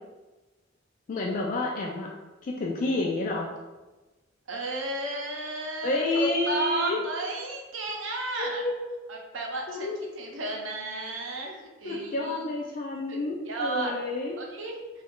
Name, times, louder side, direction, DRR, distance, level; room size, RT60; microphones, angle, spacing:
voice 1, 1.1-2.1 2.4-3.5 5.8-7.1 8.4-9.0 9.7-10.0 11.8-14.4, left 2 dB, 45° left, -1 dB, 0.4 m, -29 dB
voice 2, 4.5-8.6 9.1-12.4 13.1-13.2 13.5-13.9 14.4-14.8, right 2 dB, 85° right, 0 dB, 0.7 m, -33 dB
3.0 x 2.4 x 3.6 m, 1.2 s
head